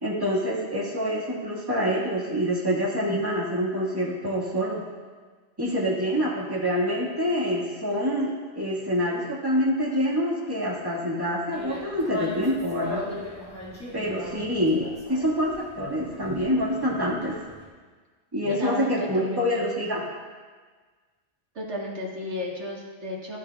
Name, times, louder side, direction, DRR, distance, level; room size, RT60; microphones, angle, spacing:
voice 1, 0.0-4.8 5.6-13.0 13.9-17.3 18.3-20.0, equal, 20° right, -5 dB, 1.7 m, -26 dB
sound 1, 11.5-17.6, left 2 dB, 15° left, 2.0 m, -37 dB
voice 2, 18.5-19.5 21.6-23.4, left 1 dB, 70° right, -3 dB, 1.9 m, -33 dB
12.0 x 9.4 x 2.3 m, 1.5 s
omnidirectional pair, 1.2 m